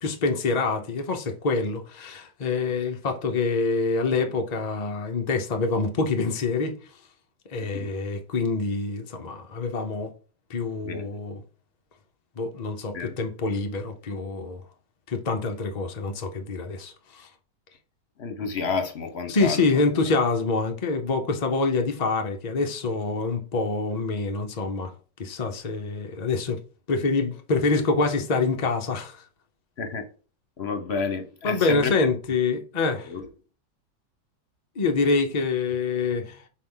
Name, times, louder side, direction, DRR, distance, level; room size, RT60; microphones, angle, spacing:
voice 1, 0.0-6.8 7.5-10.1 10.5-11.4 12.4-14.6 15.1-17.3 19.3-24.9 25.2-26.6 26.9-29.2 31.4-33.1 34.8-36.4, left 3 dB, 85° left, 0.3 m, -26 dB
voice 2, 18.2-19.6 29.8-30.0 30.6-31.9 33.0-33.3, left 5 dB, 50° left, 0.9 m, -30 dB
6.6 x 4.2 x 3.8 m
omnidirectional pair, 2.0 m